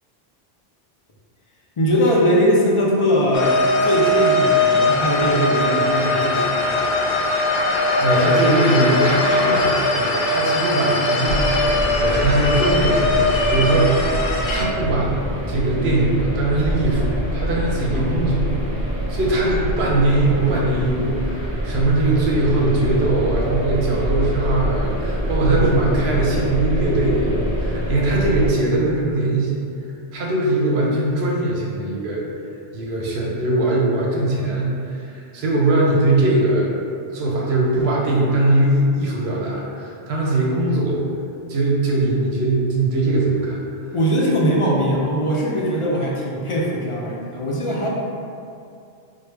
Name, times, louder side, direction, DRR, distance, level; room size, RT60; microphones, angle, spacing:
voice 1, 1.8-6.8 17.9-18.1 19.3-19.4 43.9-47.9, equal, 50° left, -3 dB, 0.4 m, -21 dB
sound 1, 3.3-14.7, left 2 dB, 70° left, 0.7 m, -20 dB
voice 2, 8.0-14.0 14.5-15.1 15.5-18.5 19.1-29.6 30.1-32.2 32.7-36.7 37.1-41.0 41.5-43.9, right 2 dB, 80° right, -3 dB, 0.9 m, -21 dB
sound 2, 11.2-28.5, equal, 35° right, 0.6 m, -25 dB
4.6 x 2.1 x 3.2 m, 2.5 s
omnidirectional pair, 1.1 m